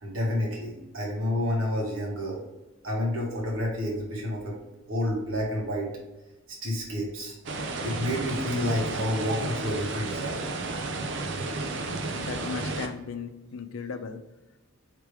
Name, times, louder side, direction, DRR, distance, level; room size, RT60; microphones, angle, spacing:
voice 1, 0.0-2.4 2.8-4.6 4.9-5.9 6.6-7.3 7.8-10.4, left 1 dB, 85° right, -2 dB, 1.6 m, -29 dB
sound 1, 7.5-12.9, right 3 dB, 60° right, 0.6 m, -32 dB
voice 2, 12.1-14.2, left 5 dB, 75° left, 8 dB, 0.5 m, -36 dB
4.7 x 3.3 x 3.4 m, 1.1 s
head